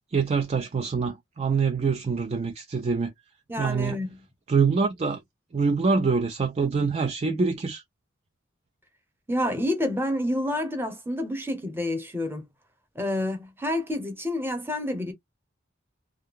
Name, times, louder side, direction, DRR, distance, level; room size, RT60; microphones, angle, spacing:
voice 1, 0.1-3.1 3.6-4.0 4.5-5.2 5.5-7.8, right 5 dB, 35° right, 0.4 m, -25 dB
voice 2, 3.5-4.2 9.3-12.5 12.9-15.1, left 1 dB, 10° right, 0.9 m, -28 dB
2.3 x 2.2 x 3.5 m
head